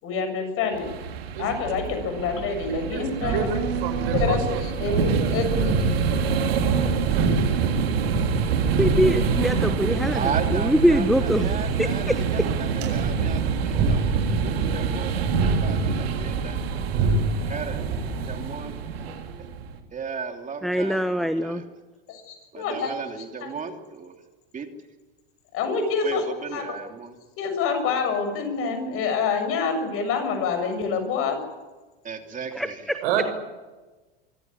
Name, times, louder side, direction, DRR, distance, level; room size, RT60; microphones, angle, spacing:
voice 1, 0.0-0.9 1.4-3.5 4.1-5.7 6.1-6.2 22.1-22.9 25.5-26.2 26.5-26.6 27.4-31.4, left 5 dB, 50° left, 6 dB, 7.2 m, -26 dB
sound 1, 0.7-19.8, right 6 dB, 85° right, 3.1 m, -27 dB
sound 2, 3.2-18.4, right 3 dB, 50° right, 7.5 m, -28 dB
voice 2, 3.8-4.6 4.9-5.4 33.0-33.3, right 9 dB, 70° right, 8 dB, 5.5 m, -28 dB
voice 3, 8.8-10.2 10.5-11.5 11.8-12.2 20.6-21.6 32.5-33.0, equal, ahead, 9 dB, 1.3 m, -23 dB
voice 4, 10.1-16.6 17.5-18.7 19.9-21.7 22.5-24.2 24.5-24.7 26.0-27.2 32.0-32.9, right 6 dB, 25° right, 4 dB, 3.1 m, -35 dB
25.0 x 15.0 x 9.9 m, 1.2 s
hypercardioid pair, 100°, 29 cm